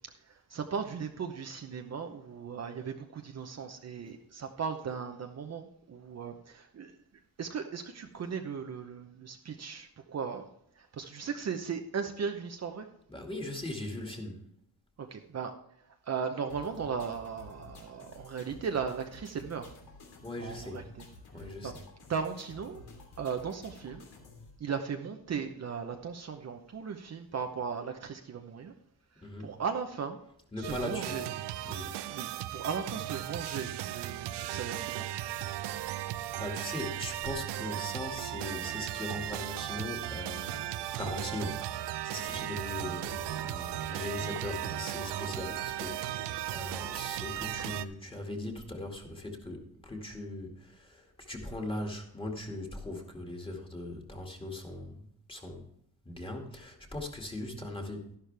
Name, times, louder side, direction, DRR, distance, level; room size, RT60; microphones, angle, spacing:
voice 1, 0.5-6.9 7.4-10.5 10.8-12.9 15.1-15.5 16.1-19.7 20.4-20.8 21.6-21.7 22.1-22.8 23.2-24.0 24.6-28.7 29.4-30.2 30.6-31.2 32.1-35.1, right 6 dB, 40° right, 5 dB, 0.8 m, -37 dB
voice 2, 13.1-14.5 20.2-20.9 21.3-21.8 29.2-29.6 30.5-31.2 31.6-32.0 36.1-40.6 41.0-46.2 46.5-55.7 56.1-58.1, left 1 dB, 15° left, 2 dB, 2.1 m, -40 dB
sound 1, 16.5-24.5, left 3 dB, 70° left, 3.4 m, -52 dB
sound 2, 30.6-47.8, right 13 dB, 90° right, 0.7 m, -36 dB
Water / Liquid, 42.2-47.7, right 6 dB, 65° right, 1.9 m, -51 dB
12.0 x 11.5 x 3.4 m, 0.73 s
cardioid pair, 135°, 40 cm